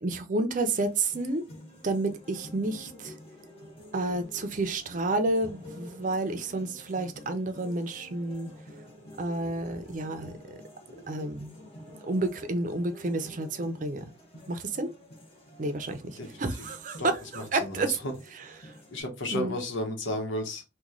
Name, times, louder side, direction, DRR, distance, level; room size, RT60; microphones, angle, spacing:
voice 1, 0.0-1.4 1.8-3.2 3.9-8.5 9.2-10.4 11.1-11.6 12.0-14.1 14.5-14.9 15.6-18.0 18.3-18.7 19.3-19.5, right 2 dB, 40° right, 0.5 m, -30 dB
sound 1, 0.7-19.0, left 1 dB, 30° left, 0.9 m, -49 dB
voice 2, 17.3-18.0 18.9-20.6, left 1 dB, 85° left, 1.0 m, -33 dB
3.0 x 2.2 x 3.7 m
head